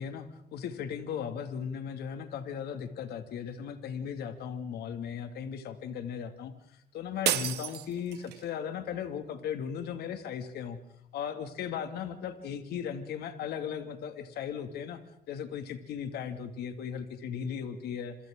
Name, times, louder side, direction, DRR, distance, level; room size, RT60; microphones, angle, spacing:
voice 1, 0.0-6.5 6.9-10.8 11.1-15.0 15.3-18.2, left 8 dB, 70° left, 7 dB, 2.3 m, -37 dB
sound 1, 7.2-8.5, right 12 dB, 75° right, 2.1 m, -31 dB
27.5 x 27.5 x 3.8 m, 0.75 s
cardioid pair, 110°, 17 cm